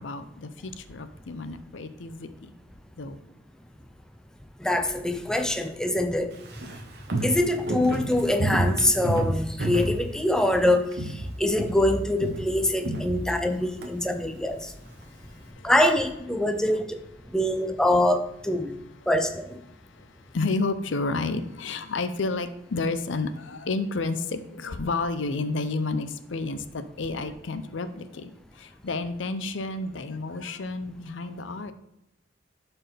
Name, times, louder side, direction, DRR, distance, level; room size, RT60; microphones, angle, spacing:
voice 1, 0.0-2.5 3.0-3.2 7.2-7.3 15.3-15.7 20.0-28.3 28.5-31.7, left 3 dB, 85° left, 11 dB, 0.6 m, -31 dB
voice 2, 4.6-6.3 7.2-10.9 11.4-14.7 15.6-17.0 17.3-18.7 19.1-19.6, left 1 dB, 5° left, 6 dB, 0.4 m, -24 dB
Walk footsteps, 6.3-10.6 10.9-11.3 11.6-13.9 14.2-14.3, right 1 dB, 55° right, 1.0 m, -30 dB
11.5 x 4.5 x 3.4 m, 0.86 s
head